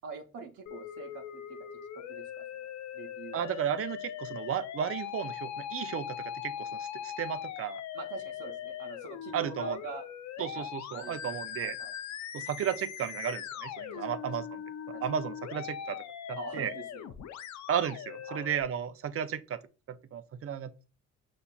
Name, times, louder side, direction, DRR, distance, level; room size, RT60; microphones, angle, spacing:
voice 1, 0.0-1.6 1.9-3.5 7.9-10.0 10.4-10.7 10.9-11.9 13.9-14.3 14.9-15.0 16.4-17.1 18.3-18.6, right 4 dB, 75° right, 0.9 m, -44 dB
Musical instrument, 0.7-18.6, left 9 dB, 70° left, 0.5 m, -40 dB
voice 2, 3.3-7.8 9.3-9.8 10.4-11.8 12.3-14.4 15.0-16.7 17.7-19.6 19.9-20.7, right 9 dB, 50° right, 0.5 m, -34 dB
5.9 x 2.7 x 2.3 m
cardioid pair, 90°, 30 cm